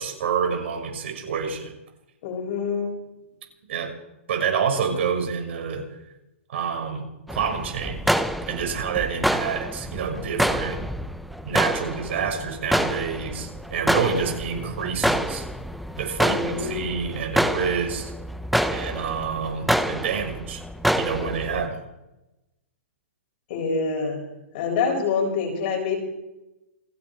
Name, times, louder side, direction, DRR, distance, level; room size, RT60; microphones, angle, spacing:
voice 1, 0.0-1.7 3.7-4.0 4.3-5.9 6.5-8.2 8.5-10.8 11.4-15.5 16.0-18.1 18.7-20.6 21.0-21.8, right 6 dB, 65° right, 4 dB, 5.9 m, -28 dB
voice 2, 2.2-2.9 16.2-16.9 23.5-24.2 24.5-26.0, left 5 dB, 50° left, 1 dB, 7.7 m, -26 dB
sound 1, 7.3-21.7, equal, ahead, 0.8 m, -27 dB
28.5 x 10.0 x 4.8 m, 0.94 s
hypercardioid pair, 130°, 7 cm